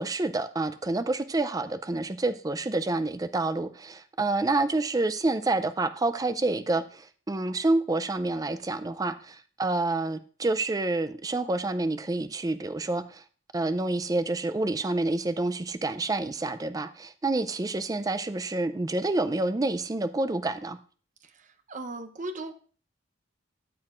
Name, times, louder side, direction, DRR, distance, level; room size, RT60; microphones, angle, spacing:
voice 1, 0.0-13.2 13.5-20.8, right 2 dB, 20° right, 0.4 m, -28 dB
voice 2, 21.2-22.5, right 2 dB, 40° right, 0.8 m, -38 dB
13.0 x 7.8 x 2.5 m
head